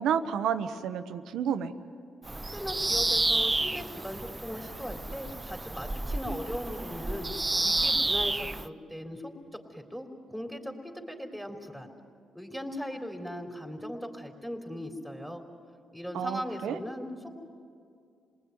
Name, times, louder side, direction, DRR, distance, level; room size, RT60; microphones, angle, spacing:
voice 1, 0.0-1.7 16.1-16.8, right 8 dB, 80° right, 10 dB, 1.1 m, -30 dB
Bird vocalization bird call bird song, 2.2-8.7, right 2 dB, 20° right, 0.6 m, -30 dB
voice 2, 2.5-7.3 7.6-11.9 12.3-15.4 15.9-17.3, equal, ahead, 3 dB, 3.7 m, -39 dB
28.0 x 20.0 x 9.5 m, 2.4 s
cardioid pair, 75°, 0 cm